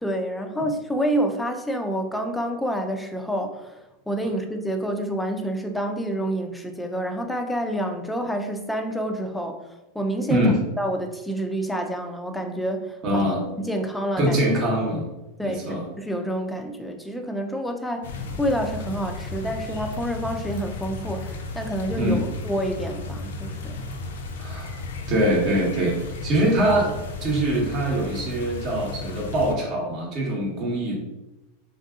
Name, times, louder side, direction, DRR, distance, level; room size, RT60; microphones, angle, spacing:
voice 1, 0.0-10.5 10.8-13.2 13.6-14.4 15.4-23.8, right 1 dB, 5° left, 5 dB, 0.4 m, -28 dB
voice 2, 13.0-13.4 14.2-15.1 15.4-15.8 22.0-22.2 24.4-24.8 25.1-26.9 27.2-31.0, right 1 dB, 45° right, -2 dB, 1.2 m, -23 dB
sound 1, 18.0-29.5, left 3 dB, 85° left, 0.4 m, -34 dB
3.5 x 2.6 x 2.4 m, 1.0 s
hypercardioid pair, 110°, 0 cm